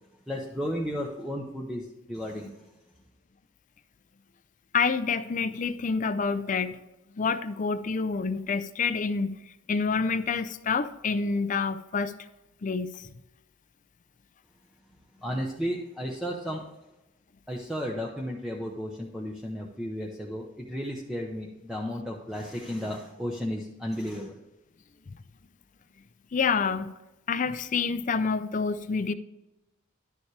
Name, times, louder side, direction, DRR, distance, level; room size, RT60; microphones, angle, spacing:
voice 1, 0.3-2.5 15.2-16.6 17.5-24.4, equal, ahead, 0.8 m, -33 dB
voice 2, 4.7-6.8 7.2-9.3 9.7-12.1 12.6-13.1 26.3-26.9 27.3-29.1, left 5 dB, 40° left, 0.5 m, -27 dB
11.0 x 7.1 x 3.3 m
head